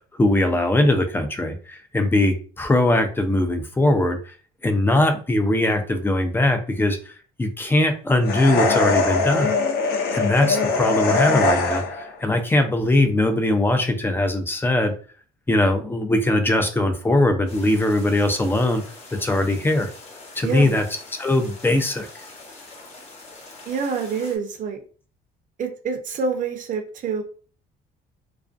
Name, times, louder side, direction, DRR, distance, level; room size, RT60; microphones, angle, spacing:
voice 1, 0.2-4.3 4.6-7.1 7.4-9.5 10.1-14.9 15.5-18.8 19.2-19.9 20.4-20.8 21.2-22.1, left 1 dB, 15° left, 6 dB, 0.4 m, -20 dB
sound 1, 8.2-12.1, left 3 dB, 70° left, 0.6 m, -21 dB
sound 2, 17.5-24.4, left 3 dB, 40° left, 0.8 m, -43 dB
voice 2, 20.4-20.8 23.7-24.8 25.6-27.2, right 5 dB, 50° right, 3 dB, 0.7 m, -26 dB
2.4 x 2.1 x 2.4 m, 0.39 s
cardioid pair, 110°, 17 cm